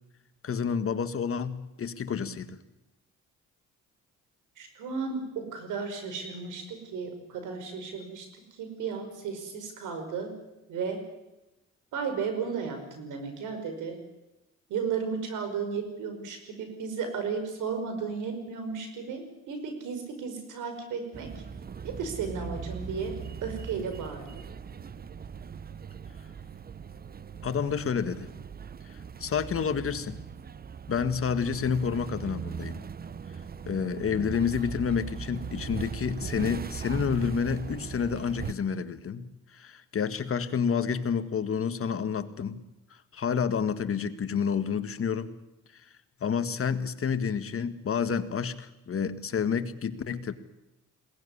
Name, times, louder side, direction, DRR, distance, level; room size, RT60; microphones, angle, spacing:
voice 1, 0.4-2.6 27.4-28.3 29.2-30.2 30.9-32.8 33.7-42.6 43.1-45.3 45.7-45.8 46.2-50.3, left 6 dB, 45° left, 10 dB, 1.8 m, -29 dB
voice 2, 4.6-10.4 10.7-11.0 11.9-14.0 14.7-21.4 21.8-23.2 23.4-24.3, right 5 dB, 85° right, 7 dB, 5.5 m, -34 dB
sound 1, 21.1-38.5, right 6 dB, 30° right, 0.8 m, -39 dB
21.5 x 18.5 x 9.9 m, 0.96 s
cardioid pair, 90°, 30 cm